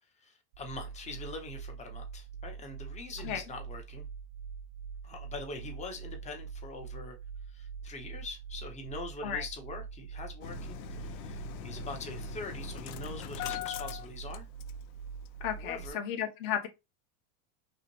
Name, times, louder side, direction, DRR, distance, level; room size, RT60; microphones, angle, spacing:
voice 1, 0.2-4.1 5.0-7.2 7.5-14.5 15.6-16.0, left 3 dB, 15° left, 0.7 m, -43 dB
sound 1, 0.5-15.9, right 6 dB, 75° right, 0.8 m, -44 dB
Engine starting, 10.4-15.0 15.3-15.4 15.7-15.8, left 12 dB, 85° left, 0.7 m, -41 dB
voice 2, 15.4-16.7, left 9 dB, 40° left, 1.0 m, -33 dB
5.6 x 2.1 x 3.0 m
supercardioid pair, 150°, 50 cm